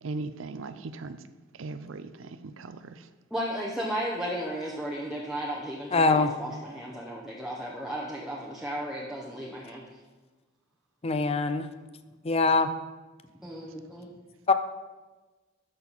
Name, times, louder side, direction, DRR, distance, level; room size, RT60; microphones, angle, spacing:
voice 1, 0.0-1.2 1.5-3.1, right 3 dB, 75° right, 0.6 m, -38 dB
voice 2, 3.3-9.8 13.4-14.1, equal, 5° right, 0.9 m, -34 dB
voice 3, 5.9-6.3 11.0-11.7 12.2-12.7 14.5-14.6, left 3 dB, 30° left, 0.5 m, -23 dB
13.0 x 6.1 x 4.1 m
head